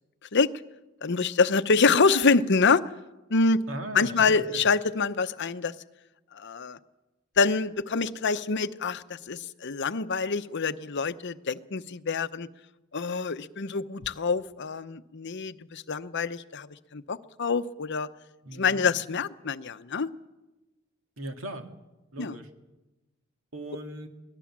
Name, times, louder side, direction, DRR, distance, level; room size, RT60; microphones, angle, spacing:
voice 1, 1.0-2.8 3.3-3.6 3.9-5.7 6.3-6.8 7.4-12.5 12.9-18.1 18.5-20.1 22.2-22.3, left 4 dB, 60° left, 12 dB, 0.8 m, -26 dB
voice 2, 3.7-4.7 18.4-18.9 21.2-21.7 22.1-22.5 23.5-24.1, right 1 dB, 75° right, 5 dB, 2.2 m, -38 dB
23.0 x 17.5 x 7.4 m, 1.1 s
head